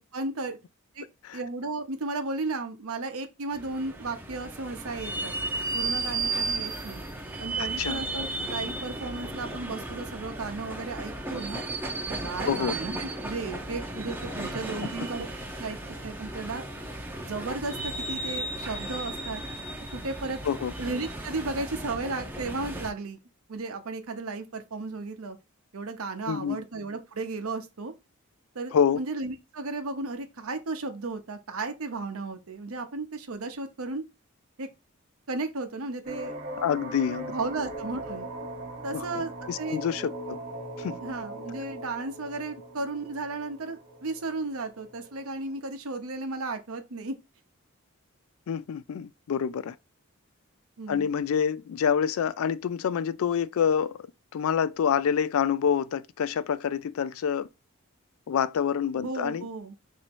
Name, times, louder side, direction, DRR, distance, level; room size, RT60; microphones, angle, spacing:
voice 1, 0.1-0.6 0.9-1.1 1.3-5.3 5.7-7.0 7.4-11.6 12.1-15.3 15.6-15.8 16.0-16.6 17.2-19.4 19.9-20.4 20.8-23.2 23.5-25.4 25.7-27.9 28.5-34.0 34.6-34.7 35.3-36.3 37.3-38.3 38.8-39.8 41.0-47.2 50.8-51.1 59.0-59.7, right 3 dB, 80° right, 0.8 m, -34 dB
sound 1, 3.5-22.9, right 2 dB, 10° right, 0.5 m, -34 dB
voice 2, 12.5-12.8 14.8-14.9 20.4-20.7 26.3-26.6 28.7-29.0 36.6-37.3 38.9-40.4 40.8-41.0 48.5-49.8 50.9-54.0 54.3-57.5 58.3-59.5, left 7 dB, 75° left, 0.3 m, -27 dB
sound 2, 36.0-45.6, right 2 dB, 40° right, 1.0 m, -40 dB
3.0 x 2.7 x 4.4 m
head